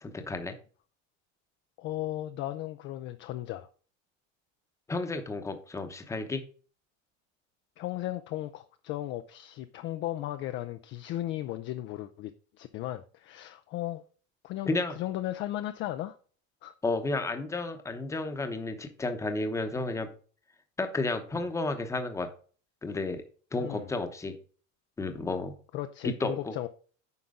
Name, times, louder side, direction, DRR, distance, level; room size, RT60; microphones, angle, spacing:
voice 1, 0.0-0.5 4.9-6.4 14.6-15.0 16.8-20.1 20.8-22.3 22.8-23.2 23.5-24.4 25.0-25.5 26.0-26.5, left 3 dB, 10° left, 0.9 m, -32 dB
voice 2, 1.8-3.7 7.8-12.3 12.6-14.0 14.4-16.2 16.6-16.7 21.3-21.4 23.6-23.9 25.7-26.7, left 14 dB, 35° left, 0.4 m, -36 dB
9.5 x 5.8 x 3.7 m
cardioid pair, 170°, 34 cm